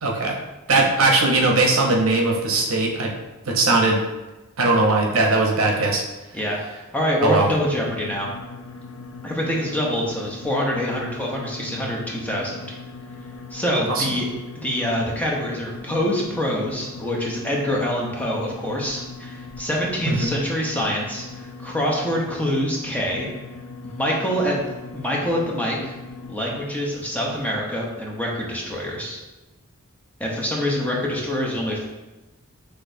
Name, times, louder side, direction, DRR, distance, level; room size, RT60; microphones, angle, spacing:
voice 1, 0.0-0.4 0.7-3.1 3.5-4.0 4.6-6.0 7.2-7.5 14.0-14.1 20.1-20.3, right 2 dB, 75° right, 0 dB, 0.8 m, -19 dB
voice 2, 6.9-8.3 9.2-12.7 13.5-14.3 14.5-23.3 23.8-24.5 24.9-25.9 26.3-29.2 30.2-31.9, equal, 5° left, -3 dB, 0.7 m, -25 dB
sound 1, 7.5-26.3, left 3 dB, 70° left, 0.5 m, -39 dB
6.0 x 3.3 x 2.6 m, 1.1 s
head